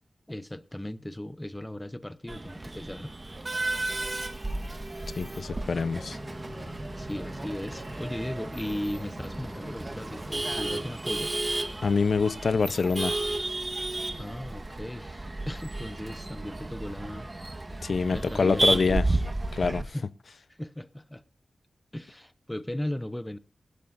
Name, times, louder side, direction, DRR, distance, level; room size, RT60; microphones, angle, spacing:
voice 1, 0.3-3.1 7.0-11.4 14.2-17.3 17.7-17.8 18.1-19.3 19.8-20.1 20.5-21.2 21.9-23.4, left 1 dB, 10° left, 0.7 m, -37 dB
Male speech man speaking / Laughter / Chatter, 2.3-19.8, right 2 dB, 25° right, 1.4 m, -33 dB
voice 2, 5.2-6.2 11.8-13.1 17.8-19.0 19.5-19.8, left 4 dB, 60° left, 0.6 m, -25 dB
sound 1, 5.8-10.9, left 1 dB, 30° left, 5.2 m, -46 dB
21.0 x 13.0 x 2.6 m
wide cardioid pair, 120°, 0 cm